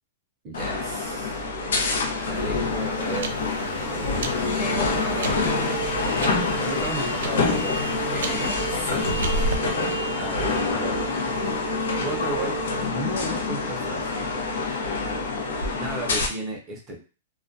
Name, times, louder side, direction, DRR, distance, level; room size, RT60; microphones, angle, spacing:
voice 1, 0.4-1.5 2.3-4.3 5.1-5.3 6.6-8.5 10.1-11.7 12.0-14.2 15.7-17.0, right 1 dB, 20° right, -2 dB, 0.6 m, -35 dB
sound 1, 0.5-16.3, left 3 dB, 80° left, 0.6 m, -26 dB
sound 2, 2.2-9.6, right 2 dB, 70° right, 0.4 m, -34 dB
voice 2, 4.5-5.9 8.1-9.6, left 1 dB, 20° left, -3 dB, 0.6 m, -35 dB
2.3 x 2.1 x 2.5 m, 0.35 s
hypercardioid pair, 170°, 0 cm